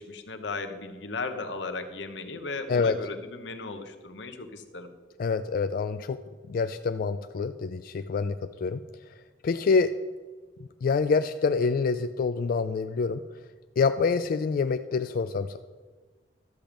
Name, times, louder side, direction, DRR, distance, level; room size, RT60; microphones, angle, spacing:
voice 1, 0.0-4.9, left 3 dB, 85° left, 8 dB, 1.0 m, -36 dB
voice 2, 5.2-6.2 6.5-8.8 9.4-9.9 10.8-13.2 13.8-15.6, left 4 dB, 55° left, 10 dB, 0.3 m, -26 dB
12.5 x 5.1 x 7.3 m, 1.4 s
head